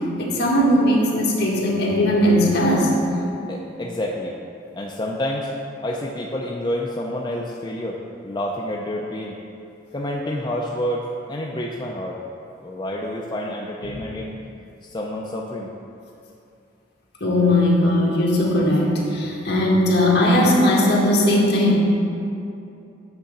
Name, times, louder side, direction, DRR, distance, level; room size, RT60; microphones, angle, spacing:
voice 1, 0.2-2.9 17.2-21.7, left 1 dB, 60° left, -4 dB, 1.6 m, -18 dB
voice 2, 3.5-4.4 4.8-5.5 5.8-9.4 9.9-12.2 12.6-14.3 14.8-15.7, left 1 dB, 25° left, -2 dB, 0.4 m, -28 dB
8.3 x 3.8 x 6.6 m, 2.6 s
head